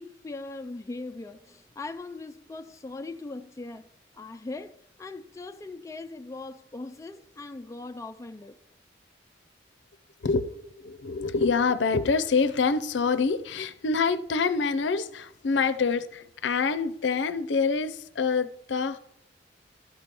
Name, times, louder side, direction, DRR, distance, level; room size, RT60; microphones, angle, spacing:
voice 1, 0.0-8.6, left 3 dB, 15° left, 0.3 m, -40 dB
voice 2, 10.2-19.0, left 4 dB, 75° left, 0.5 m, -26 dB
12.5 x 4.5 x 5.3 m
head